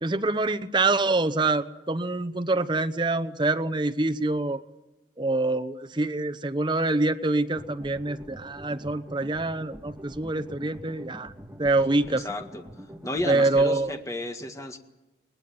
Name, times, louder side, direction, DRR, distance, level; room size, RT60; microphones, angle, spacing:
voice 1, 0.0-4.6 5.2-11.3 11.6-12.3 13.3-14.0, right 2 dB, 25° right, 11 dB, 0.9 m, -25 dB
sound 1, 7.5-13.7, equal, 10° right, 1.8 m, -45 dB
voice 2, 12.1-12.6 13.0-14.8, left 2 dB, 15° left, 6 dB, 1.9 m, -33 dB
20.5 x 20.5 x 9.6 m, 0.99 s
head